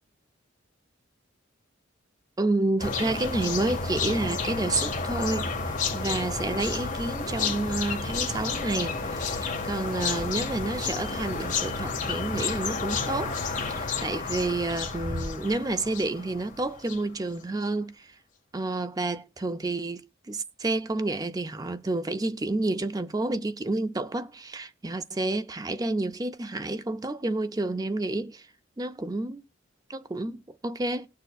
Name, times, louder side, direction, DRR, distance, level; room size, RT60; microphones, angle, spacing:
voice 1, 2.4-18.2 18.5-28.5 28.8-29.4 29.9-31.1, right 2 dB, 20° right, 0.4 m, -30 dB
sound 1, 2.8-17.1, left 4 dB, 40° left, 1.4 m, -31 dB
18.5 x 6.7 x 2.4 m
head